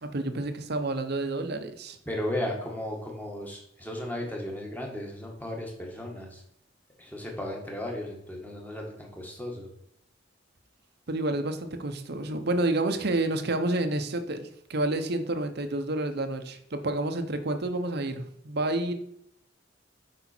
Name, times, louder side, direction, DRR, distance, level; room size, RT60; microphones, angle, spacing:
voice 1, 0.0-2.0 11.1-18.9, right 2 dB, 60° right, 8 dB, 0.9 m, -29 dB
voice 2, 2.0-6.4 7.0-9.7, left 1 dB, 10° left, 0 dB, 1.8 m, -35 dB
8.1 x 5.4 x 4.5 m, 0.72 s
head